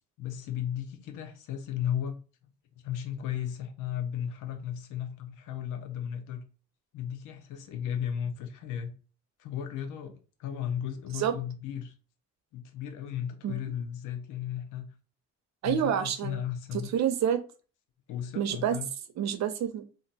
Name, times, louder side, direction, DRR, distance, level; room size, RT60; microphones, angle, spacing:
voice 1, 0.2-2.2 2.8-6.4 6.9-8.9 9.4-11.9 12.5-14.9 15.6-16.9 18.1-18.9, left 9 dB, 90° left, 0.7 m, -35 dB
voice 2, 15.6-16.4 16.7-17.4 18.4-18.8 19.2-19.8, right 9 dB, 60° right, 0.6 m, -28 dB
2.5 x 2.2 x 3.9 m
cardioid pair, 90°, 30 cm